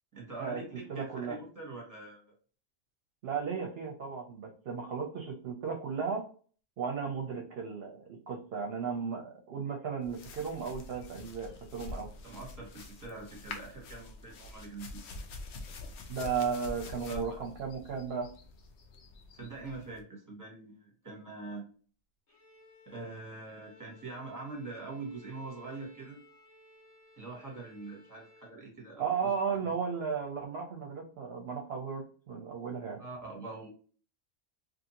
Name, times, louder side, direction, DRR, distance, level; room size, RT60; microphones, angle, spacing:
voice 1, 0.1-2.2 12.2-15.0 17.1-17.4 19.3-21.6 22.9-26.2 27.2-29.3 33.0-33.7, right 3 dB, 15° right, -2 dB, 0.9 m, -44 dB
voice 2, 0.9-1.4 3.2-6.2 6.8-8.0 8.3-12.1 16.1-18.3 29.0-33.0, right 6 dB, 60° right, 2 dB, 0.7 m, -35 dB
sound 1, 10.0-20.0, left 3 dB, 65° left, 0.8 m, -46 dB
Bowed string instrument, 22.3-28.6, left 2 dB, 90° left, 1.3 m, -59 dB
2.7 x 2.6 x 2.8 m, 0.41 s
omnidirectional pair, 1.4 m